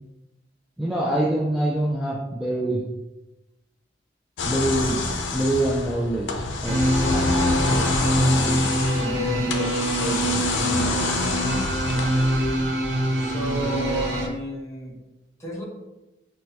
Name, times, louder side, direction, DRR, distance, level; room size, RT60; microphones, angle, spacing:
voice 1, 0.8-2.8 4.4-7.3 7.6-11.1, right 1 dB, ahead, -4 dB, 0.3 m, -27 dB
sound 1, 4.4-12.7, left 3 dB, 85° left, 0.5 m, -27 dB
sound 2, 6.6-14.3, right 1 dB, 70° right, 0.7 m, -24 dB
voice 2, 13.2-15.0 15.4-15.6, right 2 dB, 15° left, -4 dB, 0.9 m, -31 dB
6.0 x 2.2 x 2.7 m, 1.0 s
head